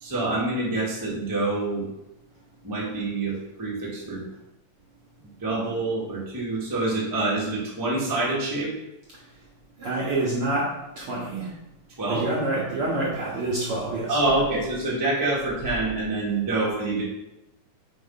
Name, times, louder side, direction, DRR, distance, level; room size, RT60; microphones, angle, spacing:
voice 1, 0.0-1.8 2.6-3.3 3.6-4.2 5.4-8.7 12.0-12.2 14.1-17.0, right 2 dB, 15° right, -5 dB, 0.6 m, -26 dB
voice 2, 9.8-11.5 12.1-14.2, right 2 dB, 65° right, -5 dB, 1.4 m, -27 dB
5.1 x 4.2 x 5.5 m, 0.93 s
omnidirectional pair, 3.7 m